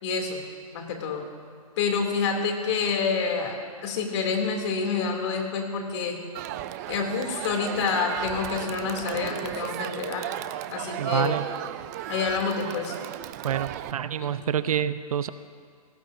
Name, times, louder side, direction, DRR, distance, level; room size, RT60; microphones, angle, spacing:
voice 1, 0.0-0.4 0.7-1.3 1.8-6.2 6.9-10.3 10.7-11.3 12.1-12.9 14.2-14.3, left 5 dB, 50° left, 2 dB, 2.9 m, -28 dB
Crowd, 6.3-13.9, right 13 dB, 30° right, 0.4 m, -35 dB
voice 2, 11.0-11.5 13.4-15.3, right 9 dB, 65° right, 13 dB, 0.7 m, -27 dB
25.0 x 18.0 x 2.7 m, 2.1 s
hypercardioid pair, 145°, 19 cm